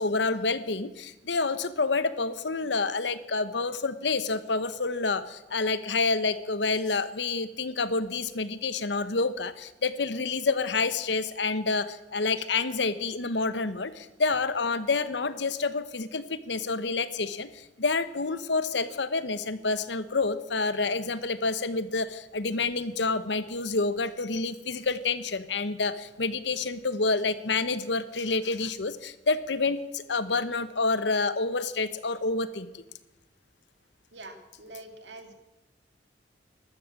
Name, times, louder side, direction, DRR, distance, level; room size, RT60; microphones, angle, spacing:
voice 1, 0.0-32.8, left 3 dB, 80° left, 13 dB, 1.0 m, -28 dB
voice 2, 34.1-35.3, right 2 dB, 80° right, 5 dB, 2.3 m, -45 dB
13.5 x 12.5 x 7.4 m, 1.1 s
head